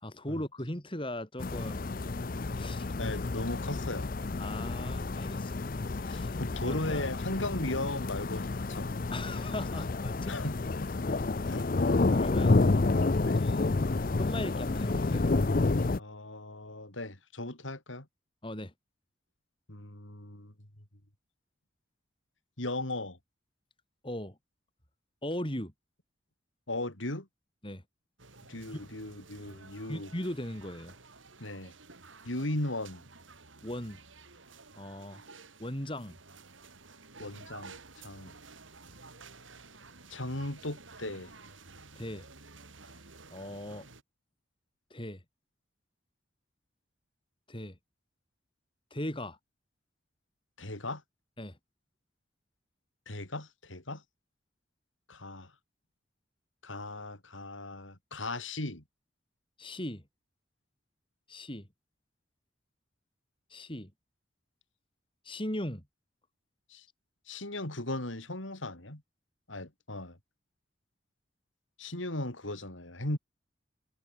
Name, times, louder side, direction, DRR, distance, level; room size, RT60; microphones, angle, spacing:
voice 1, 0.0-1.9 2.5-2.9 4.4-5.5 6.0-6.4 6.6-7.0 9.1-10.3 12.1-12.6 13.4-15.3 18.4-18.7 24.0-24.4 25.2-25.7 27.6-27.8 28.7-28.8 29.9-30.9 33.6-34.0 34.8-35.2 35.6-36.2 42.0-42.3 43.3-43.9 44.9-45.2 47.5-47.8 48.9-49.4 51.4-51.6 59.6-60.0 61.3-61.6 63.5-63.9 65.2-65.8, left 1 dB, 25° left, 4.1 m, -38 dB
sound 1, 1.4-16.0, left 3 dB, 45° left, 0.6 m, -29 dB
voice 2, 3.0-4.1 6.1-9.1 10.3-10.9 11.5-12.1 13.2-13.5 16.0-18.1 19.7-20.5 22.6-23.2 26.7-27.3 28.5-30.1 31.4-31.7 32.3-33.0 37.2-38.3 40.1-41.3 50.6-51.0 53.1-54.0 55.1-55.5 56.6-58.8 66.7-66.9 67.3-69.0 69.5-70.2 71.8-73.2, left 1 dB, 85° left, 5.2 m, -37 dB
sound 2, 28.2-44.0, right 3 dB, 90° right, 5.6 m, -52 dB
head